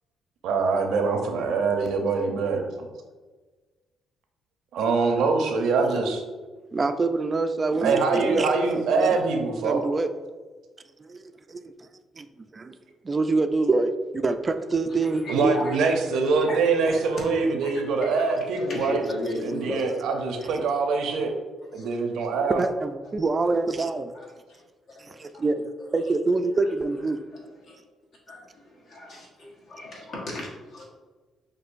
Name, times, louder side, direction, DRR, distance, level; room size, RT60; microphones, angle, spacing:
voice 1, 0.4-2.9 4.7-6.2 7.8-9.8 15.3-19.0 19.4-21.3 21.7-22.6, right 4 dB, 80° right, 4 dB, 0.6 m, -24 dB
voice 2, 6.7-9.2 9.6-10.1 11.0-11.9 12.1-12.7 13.0-15.6 20.5-20.6 22.6-24.1 25.0-27.2, right 3 dB, 30° right, 8 dB, 0.3 m, -26 dB
voice 3, 14.9-16.2 16.5-17.7 18.2-20.0 20.4-20.5 21.7-21.9 24.1-24.6 24.9-25.4 27.6-27.8 28.3-30.9, left 1 dB, 65° left, -2 dB, 1.2 m, -36 dB
6.1 x 2.6 x 2.5 m, 1.3 s
cardioid pair, 90°, 0 cm